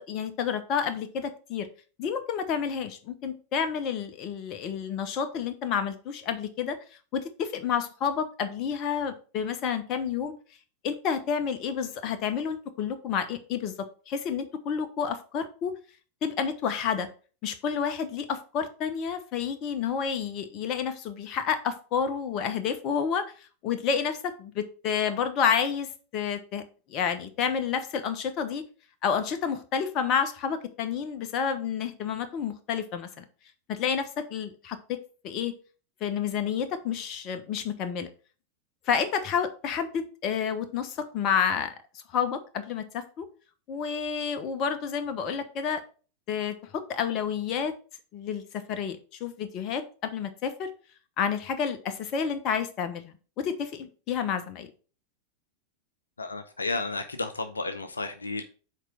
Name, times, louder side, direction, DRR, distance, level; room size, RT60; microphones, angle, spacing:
voice 1, 0.0-1.7 2.0-6.8 7.1-10.3 10.8-13.7 14.1-15.7 16.2-17.1 17.4-26.6 26.9-28.6 29.0-33.2 33.7-35.0 35.2-35.5 36.0-38.1 38.9-41.7 42.1-43.3 43.7-45.8 46.3-47.7 48.1-50.7 51.2-54.7, left 7 dB, 35° left, 1.0 m, -30 dB
voice 2, 56.2-58.4, left 3 dB, 75° left, 0.6 m, -32 dB
6.5 x 4.5 x 5.1 m
figure-of-eight pair, 90°, 0 cm